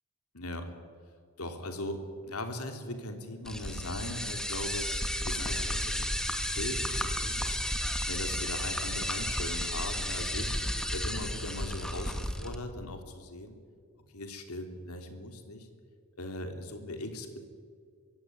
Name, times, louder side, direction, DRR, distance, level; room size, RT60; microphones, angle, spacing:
voice 1, 0.3-0.7 1.4-4.9 5.2-7.6 8.1-10.5 10.9-12.1 12.4-13.5 14.1-15.7 16.2-17.4, left 1 dB, 80° left, 6 dB, 3.3 m, -39 dB
sound 1, 3.4-12.6, equal, 5° left, 1.8 m, -33 dB
24.5 x 16.0 x 9.7 m, 2.1 s
head